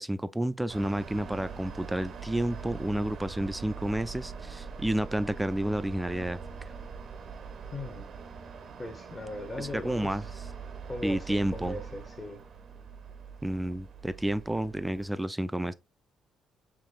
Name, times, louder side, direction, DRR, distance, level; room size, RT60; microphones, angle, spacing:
voice 1, 0.0-6.4 9.6-10.2 11.0-11.8 13.4-15.7, right 1 dB, 10° right, 0.3 m, -30 dB
sound 1, 0.7-15.1, right 5 dB, 60° right, 0.6 m, -43 dB
voice 2, 7.7-8.1 8.8-10.3 10.9-12.4, left 2 dB, 30° left, 1.0 m, -39 dB
4.8 x 3.1 x 2.5 m
cardioid pair, 90°, 0 cm